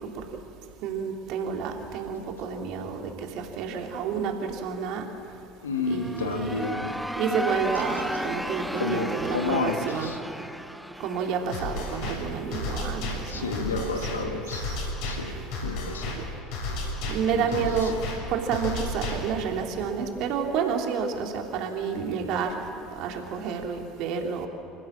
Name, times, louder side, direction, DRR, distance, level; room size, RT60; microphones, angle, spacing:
voice 1, 0.8-5.1 5.9-6.6 7.2-10.2 11.0-14.8 15.3-15.4 16.1-16.2 17.1-18.0 18.3-22.6 22.9-24.5, right 6 dB, 55° right, 2 dB, 3.1 m, -30 dB
voice 2, 5.6-7.1 8.8-10.2 13.3-14.7 15.0-15.4 15.6-16.2 16.8-17.0 17.3-17.7, left 3 dB, 80° left, 4 dB, 2.1 m, -31 dB
sound 1, 5.8-12.6, equal, ahead, 1.0 m, -34 dB
sound 2, 7.7-8.3, right 3 dB, 90° right, 4.1 m, -46 dB
sound 3, 11.5-19.5, left 2 dB, 60° left, 5.9 m, -33 dB
27.0 x 15.5 x 7.5 m, 2.7 s
figure-of-eight pair, 65°, 0 cm